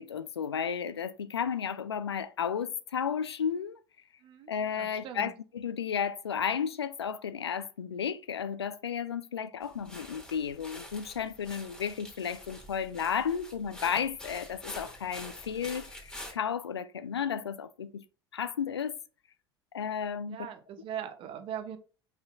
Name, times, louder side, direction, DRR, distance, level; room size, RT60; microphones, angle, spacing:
voice 1, 0.0-3.8 4.5-18.0 18.3-19.0 19.7-20.4, left 7 dB, 80° left, 0.4 m, -33 dB
voice 2, 4.2-5.3 20.3-21.8, right 9 dB, 40° right, 0.8 m, -40 dB
sound 1, 9.6-16.3, left 1 dB, 5° left, 2.0 m, -46 dB
5.3 x 3.9 x 2.3 m
figure-of-eight pair, 70°, 13 cm